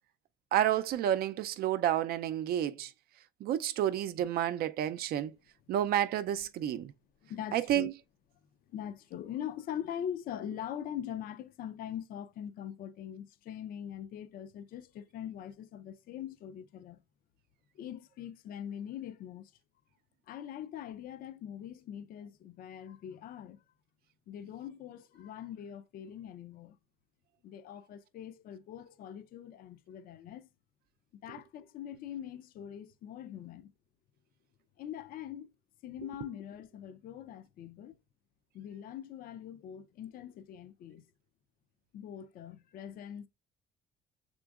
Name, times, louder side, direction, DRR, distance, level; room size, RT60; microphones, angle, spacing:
voice 1, 0.5-2.9 3.4-5.3 5.7-6.9 7.5-7.9, right 11 dB, 65° right, 0.4 m, -30 dB
voice 2, 7.2-7.9 8.7-17.0 17.7-19.5 20.3-23.6 24.3-26.8 27.4-30.5 31.2-33.7 34.8-35.5 35.8-38.0 38.5-41.1 41.9-43.3, left 10 dB, 60° left, 0.5 m, -42 dB
6.0 x 3.7 x 2.4 m
cardioid pair, 110°, 17 cm